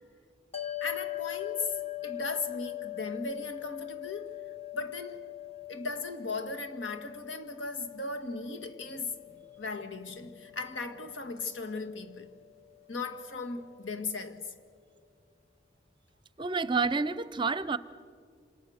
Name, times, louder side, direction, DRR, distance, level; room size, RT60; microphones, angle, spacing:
sound 1, 0.5-13.0, left 16 dB, 35° left, 1.2 m, -42 dB
voice 1, 0.8-4.4 4.7-5.3 5.7-12.3 12.9-14.5, left 3 dB, 85° left, 1.8 m, -37 dB
voice 2, 16.4-17.8, right 4 dB, 25° right, 0.6 m, -29 dB
27.5 x 26.5 x 6.5 m
head